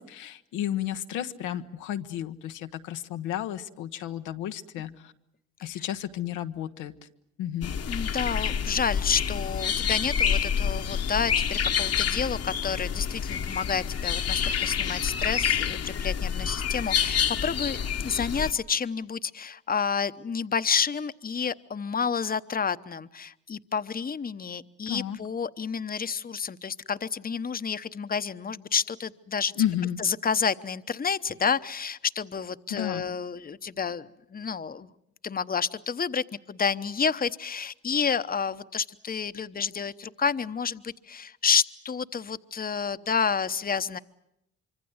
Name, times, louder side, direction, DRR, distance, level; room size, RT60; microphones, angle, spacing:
voice 1, 0.0-5.1 5.6-6.9 7.4-7.7 24.9-25.2 29.6-30.0 32.7-33.1, left 11 dB, 90° left, 7 dB, 1.1 m, -32 dB
sound 1, 7.6-18.5, left 8 dB, 55° left, 1.3 m, -28 dB
voice 2, 7.9-29.5 30.0-34.9 35.2-44.0, left 6 dB, 30° left, 12 dB, 1.0 m, -29 dB
25.0 x 25.0 x 8.0 m, 0.80 s
supercardioid pair, 65°, 30 cm